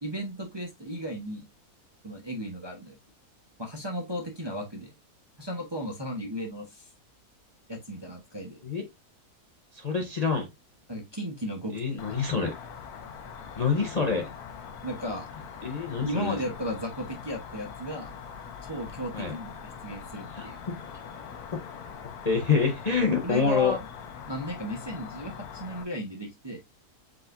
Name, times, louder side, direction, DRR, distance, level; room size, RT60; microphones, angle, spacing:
voice 1, 0.0-1.5 2.0-3.0 3.6-4.9 5.4-6.9 7.7-8.6 10.9-12.5 14.8-15.3 16.0-18.1 18.7-19.5 19.8-20.6 23.2-23.8 24.3-26.6, equal, 25° right, 0.7 m, -35 dB
voice 2, 9.7-10.5 11.7-12.5 13.6-14.3 15.6-16.4 19.1-19.3 20.3-20.5 22.2-23.8, left 5 dB, 35° left, 0.6 m, -26 dB
Cricket, 12.0-25.8, left 7 dB, 75° left, 1.2 m, -43 dB
5.0 x 3.9 x 2.5 m
omnidirectional pair, 1.7 m